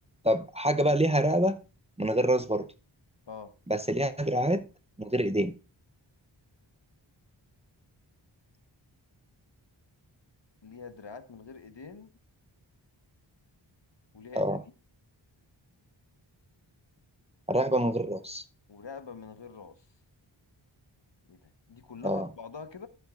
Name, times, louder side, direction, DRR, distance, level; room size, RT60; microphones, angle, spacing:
voice 1, 0.2-1.6 2.0-2.7 3.7-4.7 5.0-5.5 14.3-14.6 17.5-18.4 22.0-22.3, right 1 dB, 15° right, 0.7 m, -26 dB
voice 2, 10.6-12.1 14.1-14.7 18.7-19.9 21.3-22.9, left 5 dB, 65° left, 1.2 m, -45 dB
13.5 x 8.3 x 2.5 m
wide cardioid pair, 55°, 47 cm